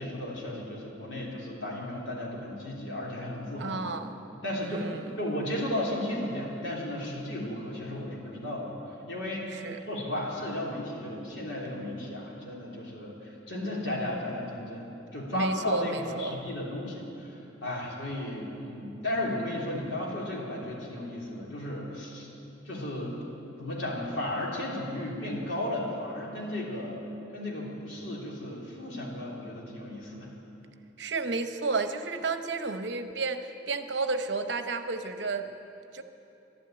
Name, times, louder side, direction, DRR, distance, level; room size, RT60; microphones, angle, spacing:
voice 1, 0.0-3.9 4.4-4.8 5.2-8.7 9.1-22.3 22.6-23.2 23.6-27.0 27.3-30.3, left 1 dB, 75° left, -4 dB, 3.4 m, -34 dB
voice 2, 3.6-4.1 4.6-5.2 9.5-9.8 15.3-16.4 31.0-35.5 35.9-36.0, right 3 dB, 65° right, 8 dB, 0.8 m, -32 dB
12.0 x 12.0 x 9.0 m, 2.9 s
head